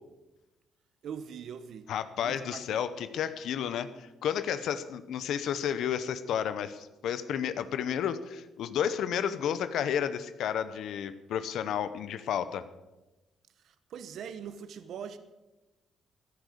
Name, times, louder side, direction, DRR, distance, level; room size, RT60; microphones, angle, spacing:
voice 1, 1.0-1.9 2.2-2.9 13.6-15.2, right 7 dB, 70° right, 0.9 m, -42 dB
voice 2, 1.9-12.6, left 9 dB, 75° left, 0.8 m, -32 dB
14.5 x 10.5 x 6.6 m
cardioid pair, 90°, 0 cm